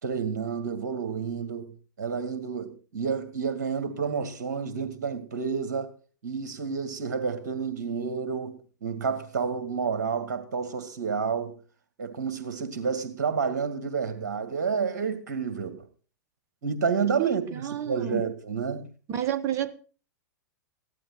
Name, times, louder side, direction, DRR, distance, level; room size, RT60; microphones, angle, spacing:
voice 1, 0.0-5.9 6.2-11.6 12.0-15.9 16.6-18.9, right 6 dB, 60° right, 2.3 m, -30 dB
voice 2, 17.2-18.2 19.1-19.7, right 10 dB, 30° right, 1.2 m, -30 dB
15.5 x 12.0 x 4.2 m
figure-of-eight pair, 100°, 10 cm